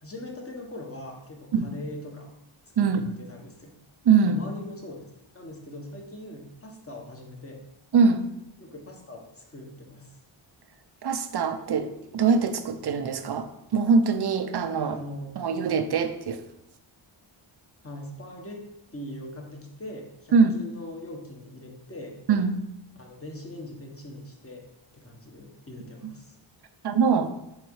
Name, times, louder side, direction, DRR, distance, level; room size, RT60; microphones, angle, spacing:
voice 1, 0.0-2.3 2.8-2.9 3.2-3.7 4.2-5.0 5.3-7.6 8.6-10.2 14.8-15.4 17.8-18.6 18.9-22.2 23.0-24.6 24.9-26.3, left 1 dB, 30° left, 0 dB, 1.4 m, -41 dB
voice 2, 2.8-3.2 4.0-4.4 7.9-8.3 11.0-15.0 15.4-16.4 20.3-20.6 22.3-22.6 26.8-27.3, right 5 dB, 55° right, 9 dB, 0.7 m, -23 dB
6.3 x 3.7 x 4.8 m, 0.89 s
cardioid pair, 75°, 49 cm